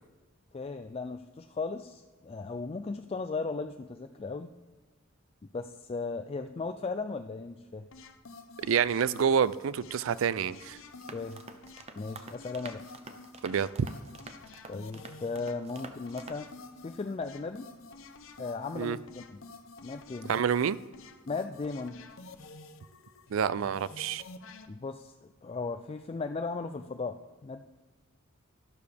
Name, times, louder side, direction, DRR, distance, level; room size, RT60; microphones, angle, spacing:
voice 1, 0.5-4.5 5.5-7.8 11.1-11.4 12.0-12.8 14.7-16.5 16.8-17.7 18.4-19.2 19.8-20.3 21.3-22.0 24.7-27.2 27.4-27.7, left 4 dB, 30° left, 6 dB, 0.4 m, -36 dB
sound 1, 7.9-24.7, left 3 dB, 75° left, 0.8 m, -50 dB
voice 2, 8.6-10.8 13.4-13.9 18.8-19.0 20.3-20.8 23.3-24.2, right 7 dB, 75° right, 18 dB, 0.4 m, -28 dB
sound 2, 11.0-16.5, right 4 dB, 30° right, 0.7 m, -48 dB
12.5 x 11.5 x 3.4 m, 1.3 s
head